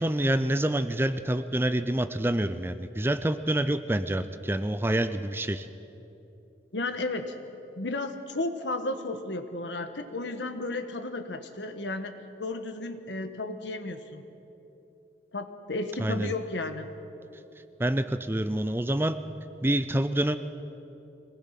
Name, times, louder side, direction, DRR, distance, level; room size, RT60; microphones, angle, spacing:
voice 1, 0.0-5.7 16.0-16.3 17.8-19.2 19.6-20.4, right 1 dB, 15° right, 11 dB, 0.5 m, -27 dB
voice 2, 6.7-7.3 7.8-14.2 15.3-16.9, left 2 dB, 85° left, 8 dB, 1.4 m, -33 dB
25.0 x 19.0 x 5.9 m, 3.0 s
head